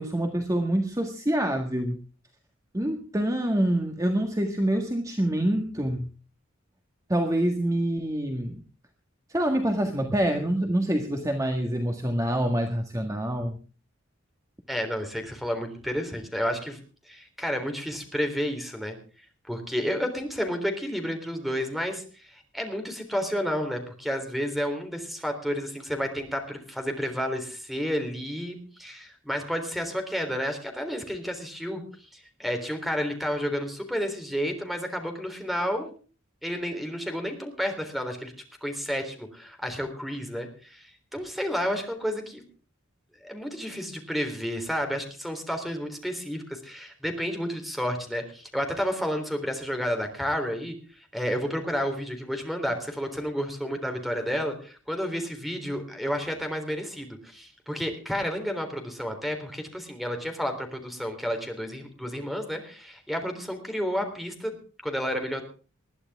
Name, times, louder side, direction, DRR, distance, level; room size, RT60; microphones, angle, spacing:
voice 1, 0.0-2.0 2.7-6.1 7.1-8.6 9.3-13.6, right 1 dB, 15° right, 4 dB, 1.7 m, -26 dB
voice 2, 14.7-16.8 17.1-19.0 19.5-31.8 32.1-35.9 36.4-38.3 38.6-42.4 43.2-50.7 51.1-64.6 64.8-65.4, equal, ahead, 5 dB, 3.6 m, -31 dB
21.0 x 13.5 x 3.6 m, 0.38 s
head